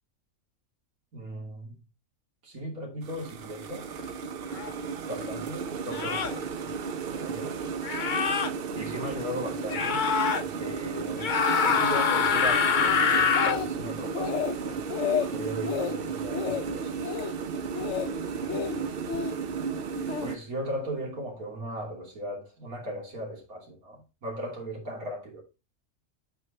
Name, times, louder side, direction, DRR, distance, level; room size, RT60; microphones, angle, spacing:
voice 1, 1.1-1.8 2.4-3.9 5.0-6.7 7.1-7.6 8.7-10.0 10.3-11.3 11.6-14.8 15.2-17.2 18.3-19.0 20.2-25.4, right 1 dB, 80° right, 3.4 m, -37 dB
sound 1, 3.0-20.4, right 5 dB, 55° right, 0.7 m, -34 dB
sound 2, 4.5-4.7 5.9-6.4 7.8-8.5 9.7-10.4 11.2-13.6, left 6 dB, 45° left, 0.7 m, -25 dB
Speech, 12.9-13.9 14.1-14.6 14.9-15.3 15.7-15.9 16.3-16.7 17.0-17.3 17.7-18.1 18.5-19.3 20.1-20.3, left 8 dB, 65° left, 0.9 m, -31 dB
8.4 x 4.7 x 4.2 m
omnidirectional pair, 1.5 m